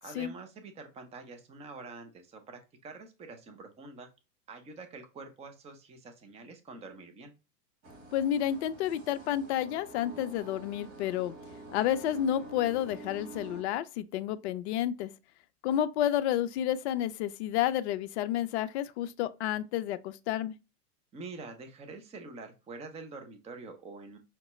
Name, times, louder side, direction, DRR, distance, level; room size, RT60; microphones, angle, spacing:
voice 1, 0.0-4.1 4.5-7.3 21.1-24.2, right 3 dB, 15° right, 0.6 m, -46 dB
sound 1, 7.8-13.6, right 2 dB, 65° right, 2.1 m, -48 dB
voice 2, 8.1-11.3 11.7-15.1 15.6-20.6, left 11 dB, 45° left, 0.5 m, -30 dB
5.7 x 2.2 x 3.0 m
hypercardioid pair, 110°, 47 cm